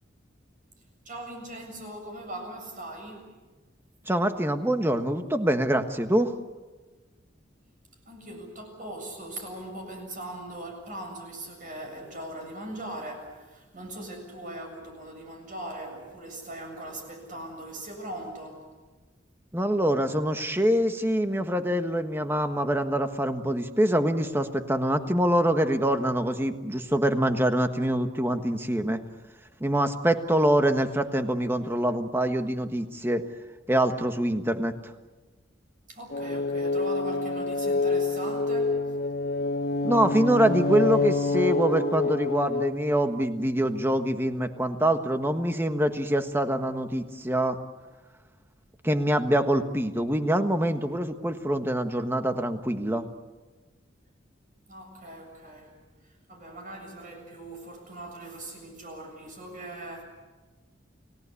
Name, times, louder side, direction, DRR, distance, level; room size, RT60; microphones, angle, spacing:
voice 1, 1.0-3.3 8.1-18.7 35.9-38.8 54.7-55.7 56.3-60.0, right 1 dB, 45° right, 3 dB, 7.5 m, -40 dB
voice 2, 4.1-6.3 19.5-29.0 29.6-33.2 33.7-34.7 39.8-47.6 48.8-53.1, right 1 dB, 10° right, 7 dB, 1.4 m, -25 dB
sound 1, 36.1-42.7, left 3 dB, 50° left, 1.1 m, -27 dB
30.0 x 18.0 x 8.5 m, 1.3 s
head